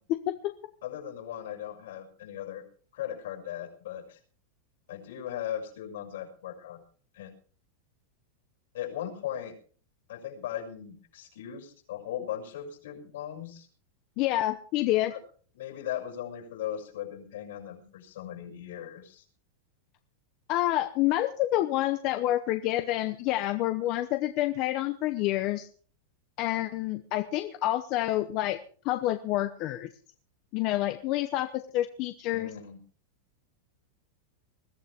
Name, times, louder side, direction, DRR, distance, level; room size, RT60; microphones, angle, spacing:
voice 1, 0.8-2.6 2.9-4.2 4.9-6.8 7.1-7.3 8.7-9.5 10.1-13.7 15.1-15.2 15.5-19.2 32.3-32.8, left 10 dB, 70° left, 5 dB, 6.2 m, -38 dB
voice 2, 14.2-15.1 20.5-25.7 26.4-28.6 28.8-29.9 30.5-32.5, left 15 dB, 30° left, 8 dB, 0.8 m, -28 dB
21.0 x 14.5 x 3.5 m, 0.43 s
supercardioid pair, 180°, 0 cm